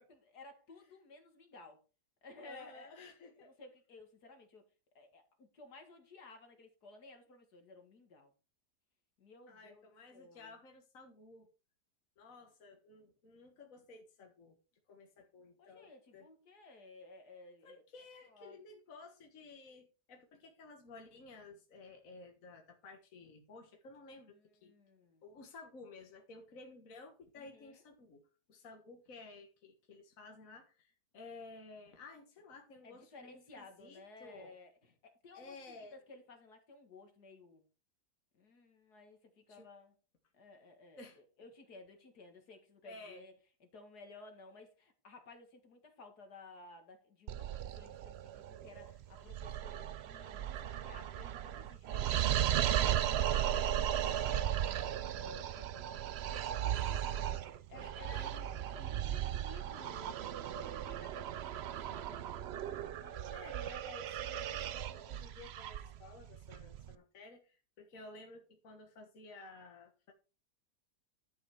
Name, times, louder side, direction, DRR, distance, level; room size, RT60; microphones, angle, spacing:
voice 1, 0.1-1.8 2.2-2.9 3.4-4.6 4.9-8.3 9.2-9.9 10.1-10.5 15.6-17.8 18.2-18.6 24.3-25.2 27.4-27.8 32.8-37.6 38.3-39.9 40.3-43.3 43.6-53.0 54.0-58.3 58.7-61.3 61.7-62.3 62.7-63.2 67.9-68.1, left 2 dB, 75° left, 2.4 m, -56 dB
voice 2, 2.5-3.5 9.5-11.5 12.2-14.6 14.9-16.3 17.6-24.4 24.6-24.7 25.2-28.2 28.5-34.6 35.3-36.0 39.5-39.7 41.0-41.2 42.8-43.2 53.0-54.3 58.1-58.5 63.1-70.1, left 3 dB, 55° left, 1.8 m, -54 dB
sound 1, 47.3-66.9, right 11 dB, 75° right, 0.5 m, -36 dB
11.0 x 5.6 x 4.8 m
omnidirectional pair, 1.7 m